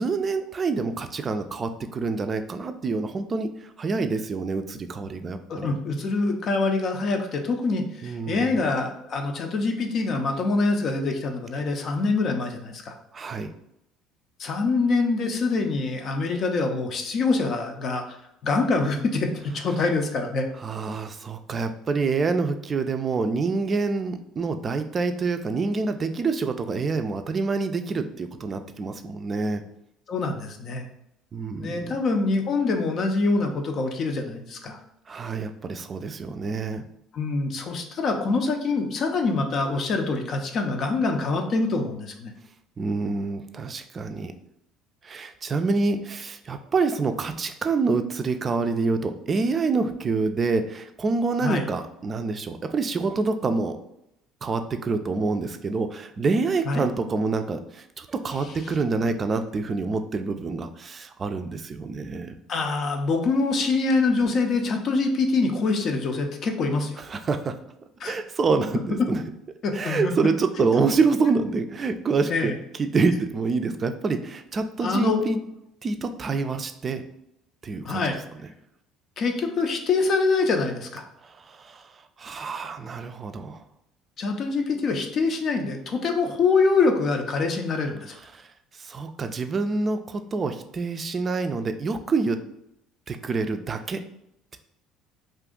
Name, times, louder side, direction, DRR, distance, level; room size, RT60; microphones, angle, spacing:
voice 1, 0.0-5.7 8.0-8.5 13.1-13.5 20.6-29.6 31.3-32.0 35.1-36.8 42.8-44.3 45.0-53.8 54.4-62.3 67.0-67.6 68.0-69.2 69.7-75.4 75.8-77.0 77.6-78.0 81.2-83.6 88.3-88.5 88.7-92.4 93.1-94.0, right 4 dB, 35° right, 8 dB, 0.3 m, -27 dB
voice 2, 5.5-12.9 14.4-18.2 18.4-20.5 30.1-30.9 31.6-34.8 37.1-42.3 51.4-51.7 56.6-56.9 62.5-67.0 68.0-68.1 69.6-70.1 70.6-70.7 72.3-72.5 74.8-75.2 77.8-78.2 79.2-81.0 84.2-88.2, left 3 dB, 55° left, 4 dB, 0.5 m, -25 dB
2.6 x 2.4 x 3.6 m, 0.80 s
hypercardioid pair, 70°, 0 cm